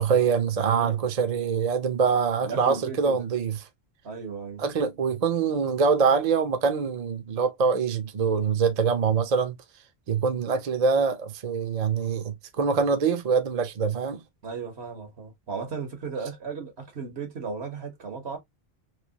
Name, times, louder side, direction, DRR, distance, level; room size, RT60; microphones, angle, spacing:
voice 1, 0.0-3.6 4.6-9.6 10.1-14.2, right 5 dB, 45° right, 0.7 m, -24 dB
voice 2, 0.6-1.1 2.4-3.3 4.0-4.6 14.4-18.4, right 5 dB, 80° right, 1.5 m, -36 dB
3.3 x 3.0 x 2.8 m
omnidirectional pair, 1.1 m